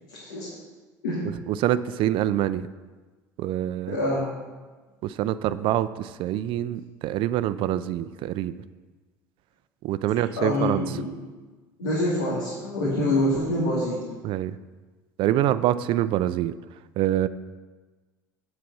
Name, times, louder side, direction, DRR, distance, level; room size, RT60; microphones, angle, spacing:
voice 1, 0.1-0.5 1.0-1.3 3.9-4.3 10.4-11.1 11.8-14.0, left 1 dB, 85° left, -7 dB, 2.6 m, -26 dB
voice 2, 1.5-2.7 3.4-4.0 5.0-8.5 9.8-10.8 14.2-14.6 15.2-16.5 17.0-17.3, right 12 dB, 55° right, 14 dB, 0.5 m, -25 dB
8.4 x 7.6 x 5.5 m, 1.3 s
hypercardioid pair, 75°, 10 cm